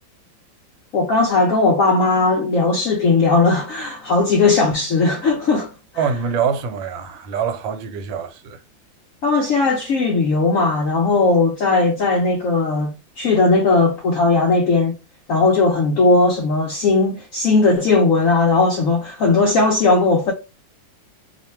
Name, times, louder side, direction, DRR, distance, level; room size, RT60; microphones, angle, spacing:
voice 1, 0.9-5.7 9.2-14.9 15.3-20.3, left 3 dB, 75° left, 0.7 m, -17 dB
voice 2, 6.0-8.6, right 6 dB, 85° right, 1.4 m, -24 dB
3.1 x 2.1 x 4.2 m
omnidirectional pair, 2.1 m